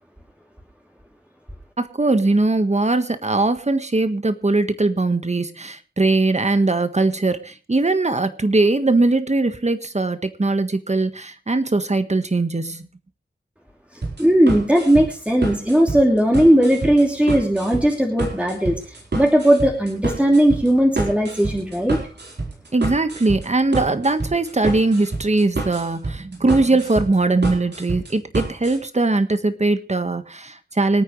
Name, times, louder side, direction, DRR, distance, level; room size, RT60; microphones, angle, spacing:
voice 1, 1.8-12.9 22.7-31.0, right 2 dB, 40° right, 10 dB, 1.5 m, -20 dB
sound 1, 14.0-28.8, right 3 dB, 70° right, 4.4 m, -28 dB
voice 2, 14.2-22.0, right 1 dB, 5° right, 0 dB, 2.9 m, -17 dB
25.5 x 9.3 x 3.3 m, 0.34 s
wide cardioid pair, 65°, 18 cm